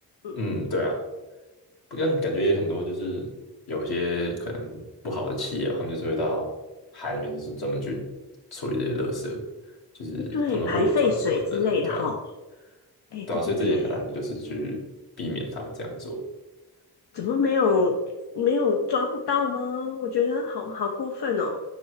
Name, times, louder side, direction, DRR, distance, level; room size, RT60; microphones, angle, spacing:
voice 1, 0.3-1.0 1.9-3.3 3.7-6.5 6.9-8.0 8.5-9.4 10.0-12.1 13.3-14.8 15.2-16.2, equal, 70° left, -1 dB, 1.8 m, -29 dB
voice 2, 10.3-12.2 13.1-13.9 17.1-18.0 18.3-21.6, left 5 dB, 90° left, 1 dB, 0.7 m, -25 dB
7.4 x 5.7 x 3.2 m, 1.1 s
wide cardioid pair, 90°, 39 cm